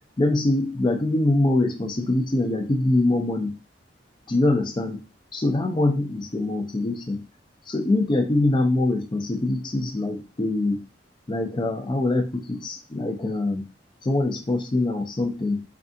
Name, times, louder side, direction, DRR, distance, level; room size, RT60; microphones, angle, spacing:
voice 1, 0.2-3.5 4.3-5.0 5.3-7.2 7.7-10.8 11.3-13.6 14.0-15.6, left 2 dB, 25° left, 4 dB, 0.4 m, -23 dB
2.6 x 2.3 x 2.5 m, 0.30 s
head